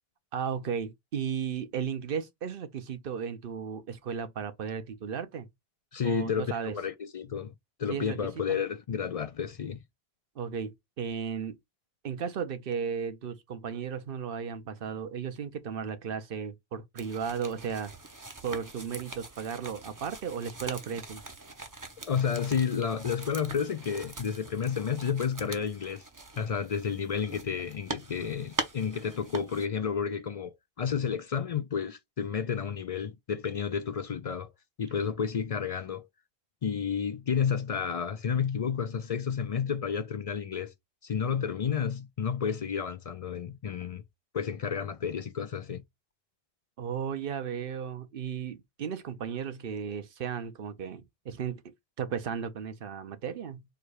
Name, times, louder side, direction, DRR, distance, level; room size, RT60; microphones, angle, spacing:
voice 1, 0.3-5.5 6.0-6.8 7.9-8.6 10.4-11.6 12.0-17.9 18.4-21.2 46.8-53.6, right 7 dB, 60° right, 0.9 m, -35 dB
voice 2, 5.9-7.5 7.8-9.8 22.1-26.0 26.4-34.5 34.8-36.1 36.6-40.7 41.0-44.0 44.3-45.8, left 7 dB, 55° left, 0.4 m, -31 dB
sound 1, 17.0-29.7, right 2 dB, 20° right, 0.6 m, -42 dB
4.6 x 2.3 x 4.7 m
omnidirectional pair, 1.1 m